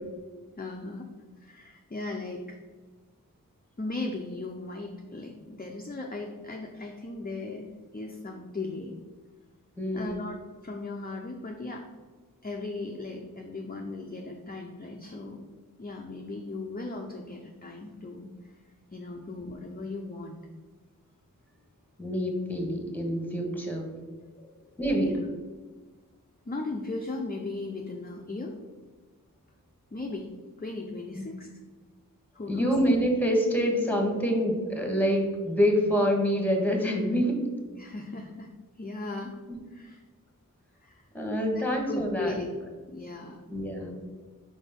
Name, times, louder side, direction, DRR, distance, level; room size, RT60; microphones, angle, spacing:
voice 1, 0.6-1.1 1.4-2.6 3.8-8.9 9.9-11.8 12.4-15.4 15.8-18.6 18.9-20.4 24.4-25.1 26.5-28.6 29.9-30.3 30.6-31.5 32.3-32.7 37.8-38.5 38.8-39.3 39.7-40.0 40.8-41.1 41.5-42.5 42.9-43.4, left 3 dB, 25° left, 1 dB, 0.6 m, -37 dB
voice 2, 9.8-10.1 22.0-23.9 24.8-25.2 31.1-31.2 32.5-37.4 39.5-39.6 41.1-42.3 43.5-44.0, equal, 5° left, 2 dB, 1.4 m, -26 dB
5.0 x 4.2 x 5.2 m, 1.4 s
wide cardioid pair, 50°, 34 cm